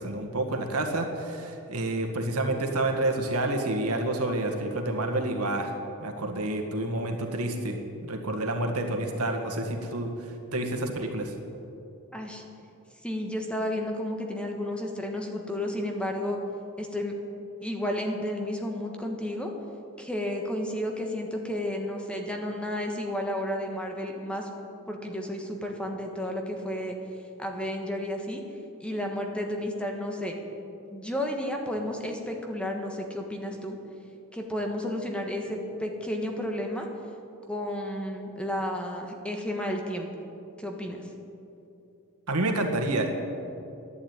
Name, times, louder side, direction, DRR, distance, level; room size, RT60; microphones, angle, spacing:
voice 1, 0.0-5.7 6.0-10.1 10.5-11.3 42.3-43.1, right 2 dB, 90° right, 3 dB, 1.8 m, -29 dB
voice 2, 12.1-12.4 13.0-16.4 16.8-17.1 17.6-19.5 20.0-24.5 24.9-26.9 27.4-28.4 28.8-30.4 30.9-33.8 34.3-36.9 37.5-40.1 40.6-41.0, left 1 dB, 5° left, 2 dB, 1.4 m, -32 dB
11.5 x 11.5 x 9.0 m, 2.8 s
head